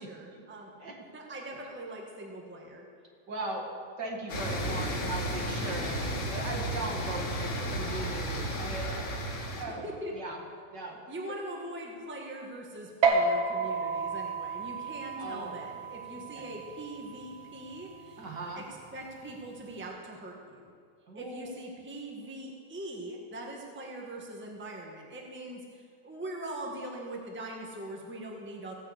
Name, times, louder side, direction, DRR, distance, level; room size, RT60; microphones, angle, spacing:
voice 1, 0.0-0.8 1.1-2.8 9.8-10.1 11.1-18.2 18.5-18.6 18.9-20.7 21.1-28.7, right 1 dB, 5° right, -1 dB, 1.3 m, -42 dB
voice 2, 3.3-3.6 4.0-6.0 6.3-9.8 10.1-10.4 10.7-11.0 15.2-15.7 16.1-16.5 18.2-18.6 21.1-21.5, right 2 dB, 60° right, 0 dB, 2.5 m, -39 dB
sound 1, 4.3-9.6, equal, 80° left, 2.8 m, -33 dB
sound 2, 13.0-19.8, right 4 dB, 85° right, 2.1 m, -32 dB
16.5 x 6.3 x 8.1 m, 2.2 s
omnidirectional pair, 2.2 m